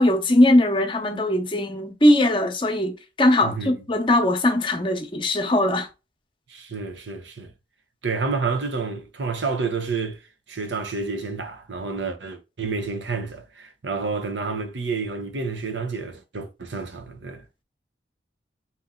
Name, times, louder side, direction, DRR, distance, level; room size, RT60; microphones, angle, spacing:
voice 1, 0.0-5.9, left 1 dB, 30° left, 0.8 m, -20 dB
voice 2, 3.4-3.8 6.5-7.5 8.0-10.2 10.5-17.4, right 4 dB, 80° right, 0.8 m, -29 dB
4.1 x 2.9 x 3.7 m
head